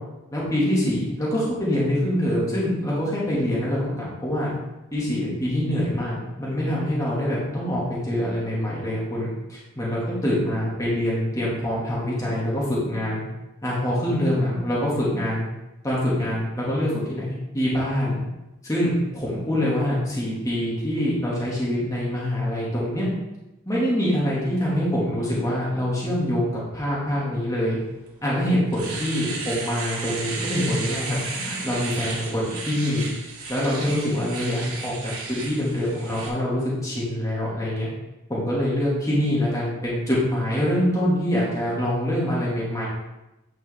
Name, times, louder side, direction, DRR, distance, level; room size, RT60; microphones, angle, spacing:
voice 1, 0.3-4.5 4.9-13.2 13.6-15.4 15.8-18.2 18.6-23.1 23.7-27.8 28.2-33.1 33.5-37.9 38.3-42.9, equal, 15° left, -7 dB, 2.2 m, -25 dB
Domestic sounds home sounds, 28.1-28.2 28.5-36.3, right 3 dB, 80° right, 2.1 m, -34 dB
9.6 x 5.3 x 3.7 m, 0.97 s
head